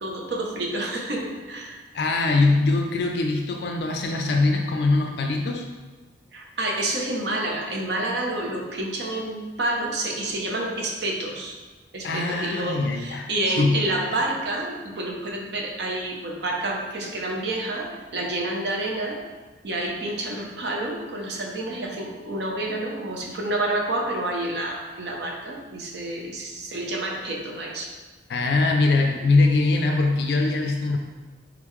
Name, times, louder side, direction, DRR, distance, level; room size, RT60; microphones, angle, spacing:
voice 1, 0.0-1.8 6.3-11.6 11.9-19.2 19.6-27.9, right 1 dB, 65° right, 0 dB, 0.6 m, -29 dB
voice 2, 1.9-5.6 12.0-13.9 28.3-31.0, left 3 dB, 60° left, 2 dB, 0.3 m, -22 dB
3.7 x 3.6 x 3.1 m, 1.2 s
head